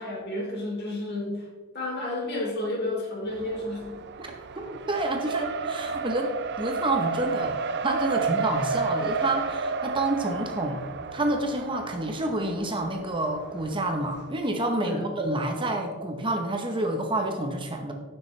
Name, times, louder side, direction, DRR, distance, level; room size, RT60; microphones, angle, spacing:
voice 1, 0.0-1.4 1.7-4.0 14.8-15.2, left 1 dB, 50° left, -2 dB, 3.1 m, -31 dB
Race car auto racing, 3.3-14.3, right 5 dB, 55° right, 0.6 m, -32 dB
voice 2, 4.2-7.6 7.8-10.8 11.1-17.9, right 1 dB, 25° right, 3 dB, 0.9 m, -28 dB
16.0 x 6.7 x 3.3 m, 1.4 s
head